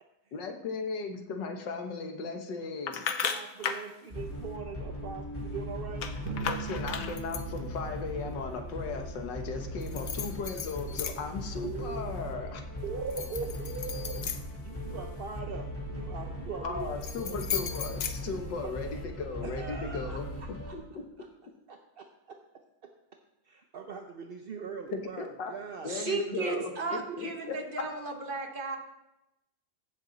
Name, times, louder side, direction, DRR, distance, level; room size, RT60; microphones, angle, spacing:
voice 1, 0.3-3.0 6.4-12.6 16.6-20.3 20.7-21.0 24.9-25.5 25.8-27.9, left 4 dB, 85° left, 4 dB, 1.9 m, -37 dB
sound 1, 2.9-3.9 6.0-7.6 9.8-11.4 11.8-12.3 13.0-15.2 16.8-18.9, left 7 dB, 60° left, 1.1 m, -36 dB
voice 2, 3.2-6.1 11.6-12.1 12.8-14.2 14.6-16.9 17.2-17.4 18.3-18.5 19.4-20.7 21.7-22.0 23.5-25.9 26.4-26.6, right 5 dB, 50° right, 4 dB, 0.7 m, -41 dB
sound 2, 4.1-20.7, equal, 5° left, 2.7 m, -39 dB
Drum, 6.2-8.9, right 6 dB, 80° right, 3.1 m, -41 dB
voice 3, 25.9-28.8, right 3 dB, 30° right, 3 dB, 1.3 m, -34 dB
15.5 x 7.8 x 4.0 m, 0.91 s
omnidirectional pair, 1.9 m